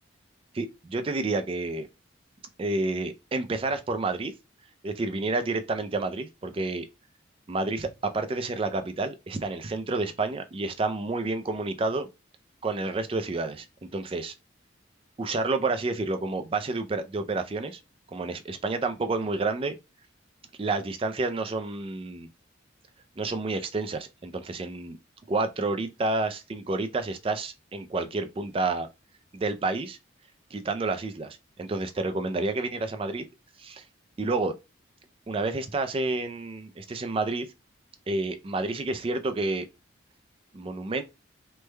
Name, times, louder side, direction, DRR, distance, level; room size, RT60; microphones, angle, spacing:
voice 1, 0.5-1.9 2.6-4.3 4.8-6.9 7.5-12.1 12.6-14.3 15.2-17.8 18.1-19.8 20.6-22.3 23.2-25.0 25.3-28.9 29.3-30.0 30.5-33.2 33.6-33.8 34.2-34.6 35.3-37.5 38.1-39.7 40.5-41.0, right 3 dB, 25° right, 0.3 m, -29 dB
3.2 x 2.2 x 3.1 m
head